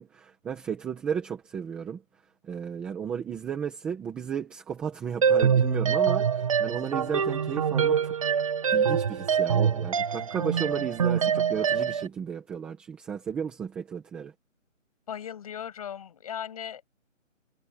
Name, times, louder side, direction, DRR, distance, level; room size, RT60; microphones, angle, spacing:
voice 1, 0.0-2.0 2.4-8.1 8.7-14.3, right 7 dB, 5° right, 1.4 m, -34 dB
sound 1, 5.2-12.1, right 7 dB, 25° right, 1.8 m, -25 dB
voice 2, 15.1-16.9, left 9 dB, 30° left, 7.5 m, -37 dB
hypercardioid pair, 170°, 39 cm